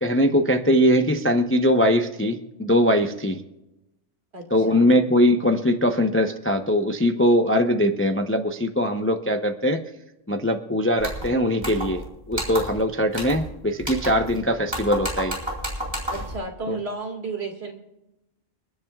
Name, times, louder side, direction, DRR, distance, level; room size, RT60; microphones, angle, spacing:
voice 1, 0.0-3.4 4.5-9.8 10.3-12.0 12.3-15.4 16.7-16.8, equal, 15° left, 5 dB, 0.6 m, -21 dB
voice 2, 4.3-4.9 16.1-17.7, right 3 dB, 55° right, 3 dB, 2.3 m, -33 dB
sound 1, 11.0-11.3 11.6-12.0 12.3-12.8 13.1-13.5 13.8-14.4 14.7-16.4, equal, 20° right, 4.3 m, -31 dB
29.5 x 10.5 x 2.4 m, 0.92 s
omnidirectional pair, 1.3 m